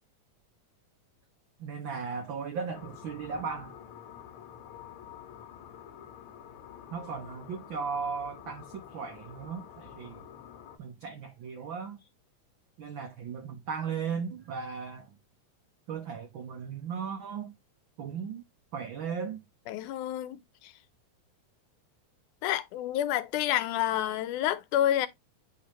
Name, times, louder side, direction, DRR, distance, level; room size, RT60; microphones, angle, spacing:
voice 1, 1.6-3.8 6.9-10.3 10.8-12.0 12.8-15.1 15.9-17.6 18.0-18.4 18.7-19.4, right 6 dB, 90° right, 1.0 m, -36 dB
sound 1, 2.7-10.8, left 9 dB, 65° left, 1.5 m, -48 dB
voice 2, 19.7-20.7 22.4-25.1, left 12 dB, 90° left, 2.2 m, -29 dB
10.0 x 3.5 x 2.9 m
omnidirectional pair, 3.4 m